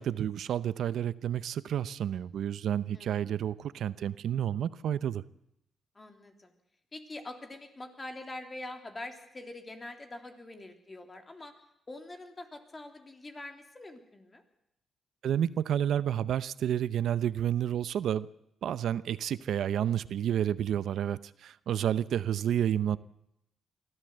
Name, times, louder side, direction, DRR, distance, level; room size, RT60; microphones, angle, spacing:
voice 1, 0.0-5.2 15.2-18.3 18.6-23.0, right 10 dB, 75° right, 16 dB, 0.7 m, -30 dB
voice 2, 5.9-6.5 6.9-11.5 11.9-14.4, left 2 dB, 25° left, 5 dB, 3.1 m, -44 dB
23.5 x 14.5 x 7.9 m, 0.80 s
cardioid pair, 85°, 0 cm